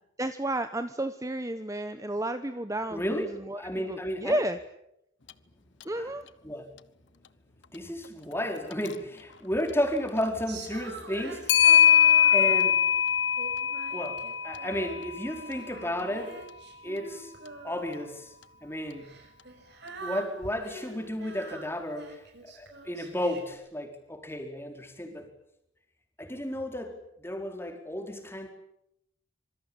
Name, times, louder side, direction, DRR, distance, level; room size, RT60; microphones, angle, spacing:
voice 1, 0.2-4.6 5.8-6.2, right 1 dB, 15° right, 10 dB, 1.0 m, -32 dB
voice 2, 2.9-4.4 5.9-6.1 6.4-6.7 7.7-11.6 12.3-12.8 13.9-16.4 16.8-17.3 17.6-18.3 18.6-19.2 20.0-22.2 22.5-25.3 26.2-28.5, equal, 10° left, 4 dB, 4.4 m, -33 dB
Clock, 5.3-5.4 5.8-5.9 8.7-8.9 11.5-15.7, left 9 dB, 60° left, 1.0 m, -22 dB
Female singing, 10.5-12.8 13.4-15.1 15.4-18.2 19.0-23.5, right 2 dB, 55° right, 6.5 m, -44 dB
26.0 x 24.5 x 9.0 m, 0.80 s
head